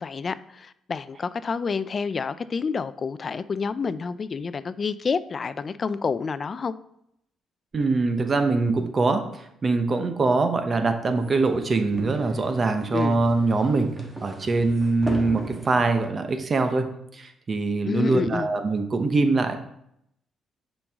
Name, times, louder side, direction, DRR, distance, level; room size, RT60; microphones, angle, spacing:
voice 1, 0.0-6.7 12.9-13.2 17.8-18.5, left 5 dB, 40° left, 15 dB, 0.3 m, -28 dB
voice 2, 7.7-9.2 9.6-13.9 14.2-19.6, right 3 dB, 40° right, 7 dB, 0.8 m, -23 dB
sound 1, 11.0-16.1, right 2 dB, 20° right, 1.3 m, -38 dB
6.0 x 5.3 x 3.6 m, 0.75 s
cardioid pair, 90°, 0 cm